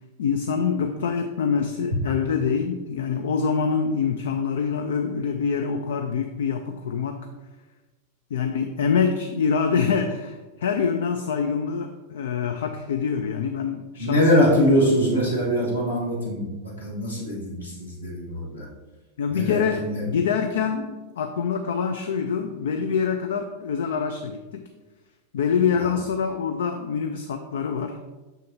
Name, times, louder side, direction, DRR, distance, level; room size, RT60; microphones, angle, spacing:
voice 1, 0.2-7.2 8.3-14.5 19.2-24.6 25.3-28.0, left 6 dB, 60° left, 6 dB, 0.4 m, -25 dB
voice 2, 14.0-18.7 19.3-20.0 25.8-25.9, equal, 85° left, -4 dB, 1.5 m, -23 dB
6.4 x 6.1 x 2.7 m, 1.2 s
figure-of-eight pair, 90°, 0 cm